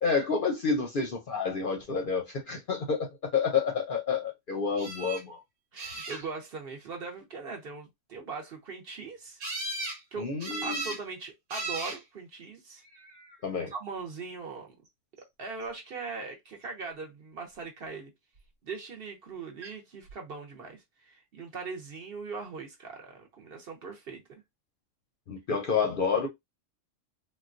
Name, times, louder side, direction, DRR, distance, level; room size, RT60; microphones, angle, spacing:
voice 1, 0.0-5.4 10.2-10.8 13.4-13.7 25.3-26.3, left 5 dB, 55° left, 0.6 m, -29 dB
sound 1, 4.8-5.2 5.8-6.5 9.4-10.0 10.4-11.0 11.5-12.0 12.9-13.4 19.6-19.7 20.1-20.2, right 2 dB, 80° right, 1.3 m, -36 dB
voice 2, 5.7-9.4 10.1-10.3 10.6-12.8 13.7-14.7 15.4-18.1 18.6-24.4, right 4 dB, 55° right, 0.9 m, -40 dB
3.8 x 2.2 x 2.5 m
omnidirectional pair, 1.3 m